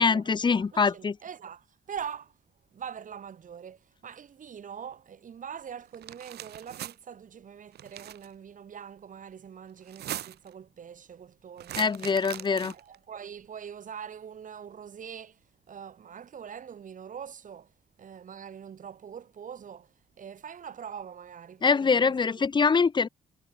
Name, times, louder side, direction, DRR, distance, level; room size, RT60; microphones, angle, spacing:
voice 1, 0.0-1.2 11.8-12.7 21.6-23.1, left 5 dB, 25° left, 0.9 m, -24 dB
voice 2, 0.5-2.4 2.7-12.0 12.3-15.4 15.7-17.7 18.0-22.1, right 8 dB, 50° right, 4.2 m, -43 dB
sound 1, 5.9-6.9 7.7-8.3 9.8-10.5 11.6-12.9, right 12 dB, 70° right, 0.9 m, -40 dB
cardioid pair, 130°, 18 cm